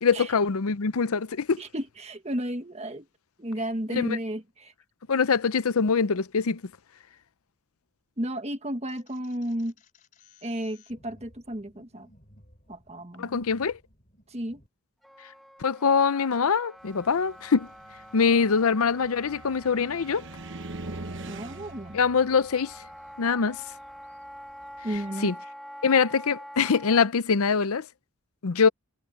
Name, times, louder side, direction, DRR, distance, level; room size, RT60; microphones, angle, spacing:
voice 1, 0.0-1.6 3.9-4.2 5.1-6.6 13.2-13.8 15.6-17.7 18.1-20.2 21.9-22.7 23.2-23.6 25.2-25.3 25.8-27.8 28.4-28.7, left 5 dB, 80° left, 0.6 m, -23 dB
voice 2, 1.6-3.1 3.4-4.7 8.2-9.7 10.4-12.1 12.7-13.5 14.3-14.6 21.2-22.0 24.8-25.3, right 1 dB, 30° right, 1.6 m, -33 dB
sound 1, 8.9-14.7, left 2 dB, 35° left, 5.1 m, -58 dB
Wind instrument woodwind instrument, 15.0-27.1, equal, ahead, 1.4 m, -46 dB
Car, 16.9-25.1, right 2 dB, 55° right, 1.1 m, -43 dB
head